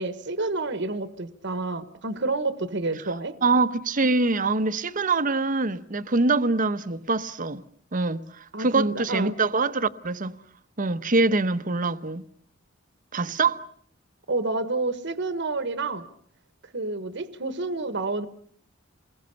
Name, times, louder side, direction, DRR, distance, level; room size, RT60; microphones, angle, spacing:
voice 1, 0.0-3.4 8.5-9.4 14.3-16.0 16.7-18.3, right 2 dB, 65° right, 1.3 m, -29 dB
voice 2, 3.4-7.6 7.9-10.3 10.8-12.2 13.1-13.7, right 3 dB, 45° right, 1.0 m, -24 dB
28.0 x 21.5 x 6.9 m
head